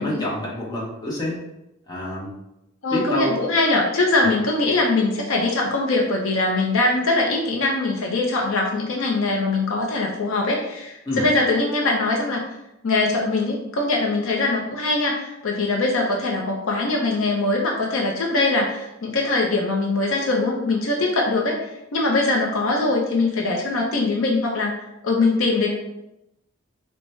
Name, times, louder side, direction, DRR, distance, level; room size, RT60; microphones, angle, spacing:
voice 1, 0.0-1.4 1.9-2.3 2.9-3.4 4.2-4.4 11.1-11.3, left 1 dB, 20° left, -5 dB, 0.8 m, -27 dB
voice 2, 2.8-12.4 12.8-24.8 25.0-25.7, left 2 dB, 65° left, -1 dB, 0.5 m, -22 dB
4.6 x 2.1 x 3.1 m, 0.89 s
head